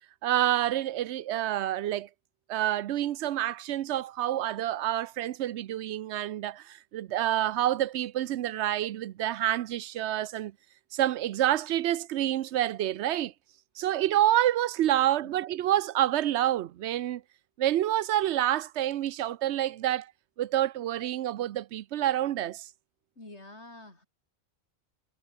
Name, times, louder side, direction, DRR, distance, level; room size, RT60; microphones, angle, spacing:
voice 1, 0.2-2.1 2.5-10.5 10.9-13.3 13.8-17.2 17.6-20.1 20.4-22.7, right 12 dB, 90° right, 0.9 m, -28 dB
voice 2, 23.2-24.1, left 2 dB, 90° left, 5.7 m, -47 dB
omnidirectional pair, 1.1 m